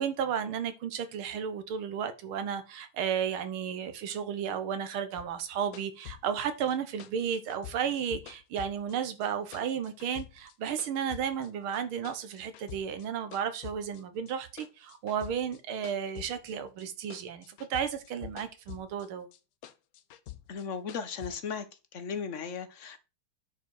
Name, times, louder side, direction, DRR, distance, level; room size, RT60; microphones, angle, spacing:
voice 1, 0.0-19.3, right 8 dB, 75° right, 2.0 m, -33 dB
sound 1, 5.2-9.3 9.5-11.5 11.7-13.1 13.3-16.9 17.1-19.1 19.3-21.3, left 13 dB, 70° left, 0.8 m, -47 dB
voice 2, 20.5-21.7 21.9-23.0, left 6 dB, 45° left, 1.1 m, -36 dB
9.7 x 4.8 x 4.8 m
omnidirectional pair, 2.3 m